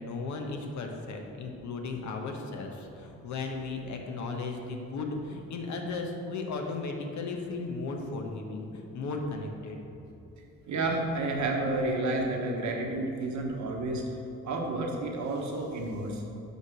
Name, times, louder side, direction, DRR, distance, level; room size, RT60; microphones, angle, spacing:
voice 1, 0.0-9.8, left 3 dB, 70° left, 3 dB, 1.0 m, -36 dB
voice 2, 10.7-14.0 14.4-16.2, right 2 dB, 70° right, 0 dB, 1.2 m, -30 dB
5.5 x 4.8 x 6.0 m, 2.7 s
cardioid pair, 90°, 30 cm